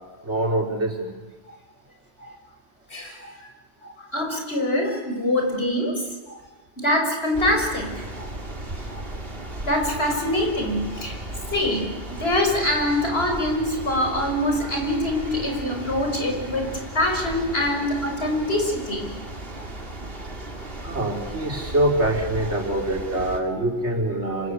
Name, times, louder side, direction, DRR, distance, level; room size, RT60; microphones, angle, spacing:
voice 1, 0.2-1.1 2.2-2.4 3.2-3.3 3.8-3.9 6.3-6.4 8.2-8.3 8.9-9.0 10.9-11.0 16.6-16.7 17.6-17.7 20.8-24.5, right 1 dB, 80° right, 1 dB, 4.9 m, -25 dB
voice 2, 2.9-3.5 4.0-6.0 6.8-8.1 9.6-11.2 11.5-19.1, left 1 dB, 65° left, 3 dB, 6.4 m, -24 dB
sound 1, 7.3-23.4, right 1 dB, 55° right, 3.3 m, -36 dB
27.5 x 26.0 x 8.3 m, 1.2 s
omnidirectional pair, 1.2 m